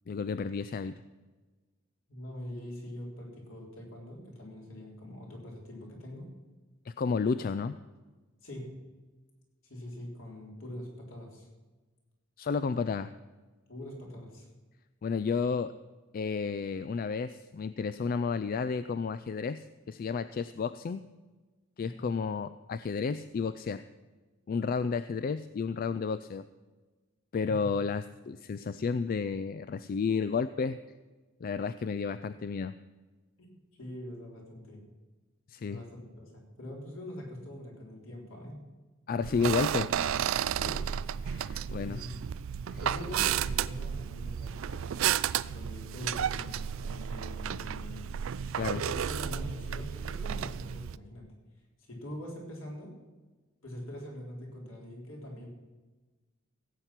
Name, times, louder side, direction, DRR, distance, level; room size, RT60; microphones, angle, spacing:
voice 1, 0.1-1.0 6.9-7.8 12.4-13.1 15.0-15.7 16.1-21.0 21.8-23.8 24.5-26.4 27.3-30.8 31.4-32.7 35.5-35.8 39.1-39.9 41.2-42.0 48.5-48.8, left 5 dB, 45° left, 13 dB, 0.3 m, -32 dB
voice 2, 2.1-6.3 8.4-8.9 9.6-11.5 13.7-14.5 21.8-22.1 27.5-27.7 33.4-34.8 35.7-38.7 40.5-41.1 41.6-42.2 42.7-45.0 45.4-48.1 48.7-51.3 51.8-53.0 53.6-55.5, left 1 dB, 65° left, -1 dB, 3.7 m, -43 dB
sound 1, 39.2-51.0, right 9 dB, 65° right, 0.4 m, -32 dB
16.5 x 8.1 x 5.9 m, 1.3 s
head